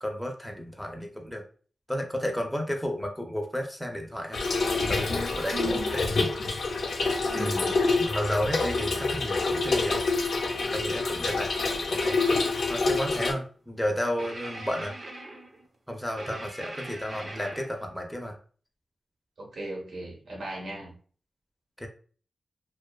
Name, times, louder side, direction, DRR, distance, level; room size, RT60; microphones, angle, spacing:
voice 1, 0.0-1.4 1.9-4.4 4.9-6.1 7.4-10.0 10.7-11.5 11.9-12.2 12.7-14.9 15.9-18.4 21.8-21.9, equal, ahead, 2 dB, 0.4 m, -32 dB
Trickle dribble / Fill (with liquid), 4.3-13.3, left 3 dB, 85° left, 0.5 m, -27 dB
voice 2, 5.5-6.0 7.3-7.7 19.4-20.9, right 2 dB, 80° right, -2 dB, 0.9 m, -37 dB
sound 1, 12.0-12.6 14.2-15.7 16.2-17.7, right 1 dB, 60° right, 0.6 m, -41 dB
2.5 x 2.2 x 2.2 m, 0.42 s
wide cardioid pair, 125°, 0 cm